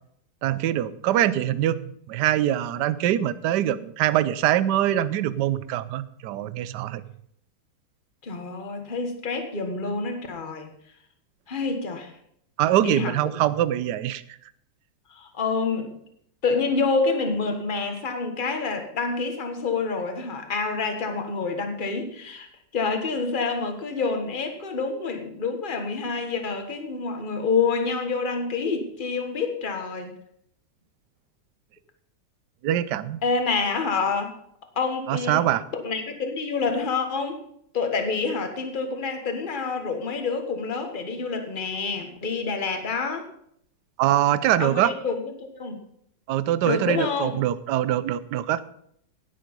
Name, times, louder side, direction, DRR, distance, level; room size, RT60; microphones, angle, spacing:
voice 1, 0.4-1.8 2.1-7.0 12.6-14.2 32.6-33.2 35.1-35.6 44.0-44.9 46.3-48.6, right 12 dB, 70° right, 16 dB, 1.2 m, -23 dB
voice 2, 8.2-10.7 11.5-12.1 12.8-13.5 15.1-16.0 16.4-22.5 22.7-30.1 33.2-34.3 34.7-35.4 35.7-37.4 37.7-43.3 44.6-45.8 46.6-47.4, left 4 dB, 30° left, 5 dB, 1.5 m, -27 dB
17.0 x 7.7 x 5.3 m, 0.70 s
omnidirectional pair, 2.0 m